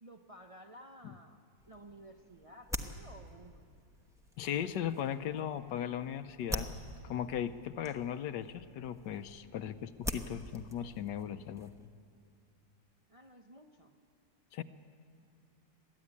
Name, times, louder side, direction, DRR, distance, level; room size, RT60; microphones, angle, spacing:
voice 1, 0.0-1.4 1.7-3.7 13.1-14.0, right 1 dB, 50° right, 4 dB, 0.4 m, -54 dB
sound 1, 1.6-11.9, left 1 dB, 5° right, 0.7 m, -45 dB
voice 2, 4.4-6.7 7.0-11.7 14.5-14.6, left 9 dB, 75° left, 12 dB, 1.3 m, -37 dB
22.0 x 14.0 x 9.7 m, 2.3 s
omnidirectional pair, 1.9 m